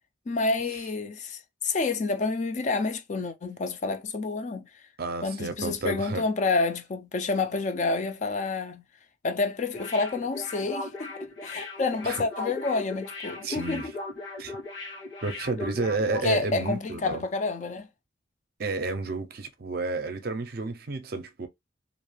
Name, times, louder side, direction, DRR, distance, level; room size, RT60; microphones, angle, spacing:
voice 1, 0.3-4.7 5.2-8.8 9.2-13.9 16.2-17.9, left 3 dB, 40° left, 0.3 m, -29 dB
voice 2, 5.0-6.2 12.0-12.2 13.4-13.9 14.4-14.6 15.2-17.2 18.6-21.5, right 3 dB, 50° right, 0.5 m, -31 dB
sound 1, 9.7-16.3 16.6-16.7, left 2 dB, 70° left, 1.2 m, -38 dB
2.5 x 2.3 x 3.1 m
head